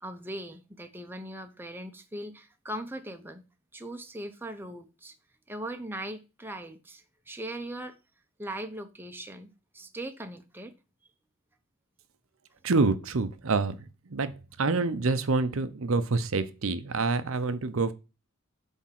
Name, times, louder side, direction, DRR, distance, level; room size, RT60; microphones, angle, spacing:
voice 1, 0.0-3.4 3.7-5.1 5.5-8.0 8.4-9.5 9.7-10.7, right 1 dB, 10° right, 0.8 m, -39 dB
voice 2, 12.6-17.9, right 3 dB, 65° right, 0.7 m, -27 dB
8.4 x 3.6 x 5.8 m
head